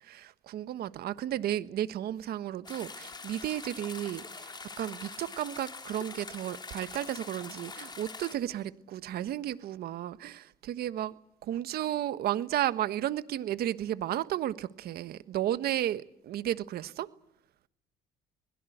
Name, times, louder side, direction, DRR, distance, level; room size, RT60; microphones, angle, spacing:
voice 1, 0.1-4.2 4.8-11.1 11.4-17.1, right 12 dB, 65° right, 1.3 m, -33 dB
sound 1, 2.6-8.4, left 4 dB, 25° left, 3.6 m, -44 dB
22.0 x 21.5 x 8.0 m
cardioid pair, 110°, 17 cm